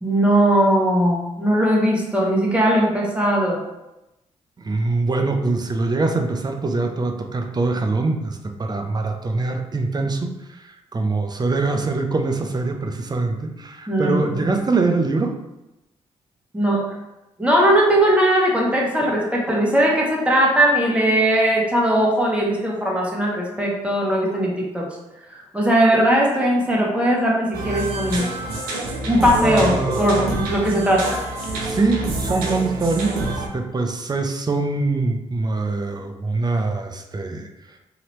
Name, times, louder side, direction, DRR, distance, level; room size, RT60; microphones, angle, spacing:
voice 1, 0.0-3.6 13.9-14.4 16.5-17.0 17.4-24.9 25.5-28.3 29.0-31.2, right 1 dB, 10° right, -3 dB, 1.2 m, -19 dB
voice 2, 4.6-15.4 29.4-30.1 31.6-37.5, right 3 dB, 30° right, 4 dB, 0.6 m, -23 dB
sound 1, 27.5-33.5, right 2 dB, 80° right, 0.6 m, -27 dB
2.9 x 2.8 x 3.0 m, 0.94 s
hypercardioid pair, 45°, 15 cm